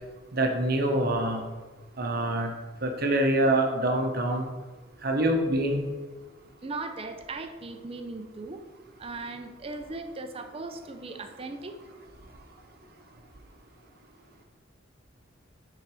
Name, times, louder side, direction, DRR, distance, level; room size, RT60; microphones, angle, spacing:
voice 1, 0.3-1.4 2.0-2.5 2.8-4.5 5.0-5.9, right 1 dB, 55° right, 3 dB, 0.9 m, -25 dB
voice 2, 6.6-8.6 9.0-11.8, right 3 dB, 30° right, 7 dB, 0.6 m, -38 dB
8.5 x 4.0 x 4.8 m, 1.3 s
head